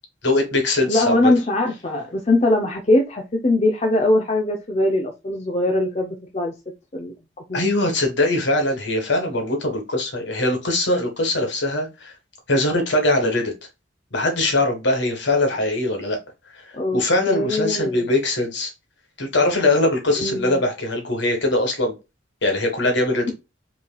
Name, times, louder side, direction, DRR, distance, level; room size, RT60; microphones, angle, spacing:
voice 1, 0.2-1.3 7.5-12.1 12.5-13.5 14.1-16.2 16.9-18.7 19.2-21.9 22.4-23.3, left 2 dB, 60° left, 1.5 m, -21 dB
voice 2, 0.9-6.5 6.9-7.1 7.5-7.6 16.7-17.0 17.3-18.1 20.2-20.6, left 1 dB, 30° left, 0.6 m, -21 dB
5.5 x 3.2 x 2.3 m
head